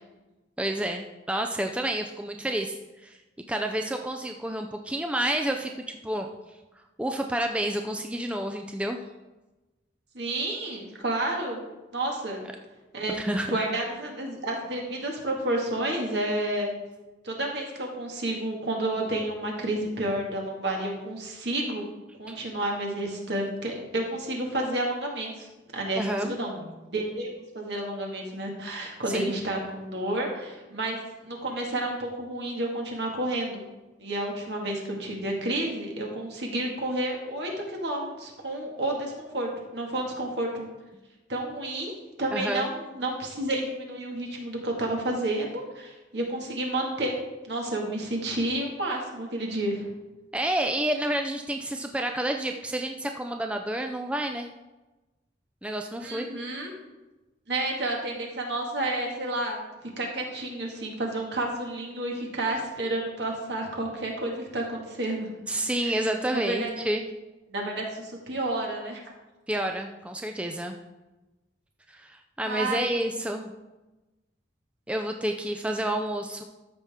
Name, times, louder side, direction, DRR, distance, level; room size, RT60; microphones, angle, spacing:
voice 1, 0.6-3.2 3.5-6.3 7.0-9.0 13.1-13.6 22.3-22.4 26.0-26.3 29.1-29.3 42.3-42.7 50.3-54.5 55.6-56.3 65.5-67.1 69.5-70.8 71.9-73.5 74.9-76.4, right 1 dB, 5° right, 4 dB, 0.4 m, -29 dB
voice 2, 10.1-11.6 11.9-12.4 12.9-13.2 13.5-16.7 17.2-21.8 22.2-25.5 25.7-33.6 34.0-40.7 41.3-47.2 47.4-49.9 56.0-56.7 57.5-59.6 60.0-65.3 65.8-65.9 66.2-66.7 67.5-69.0 72.5-72.9, right 1 dB, 65° right, 0 dB, 2.0 m, -30 dB
13.5 x 5.8 x 3.6 m, 1.1 s
head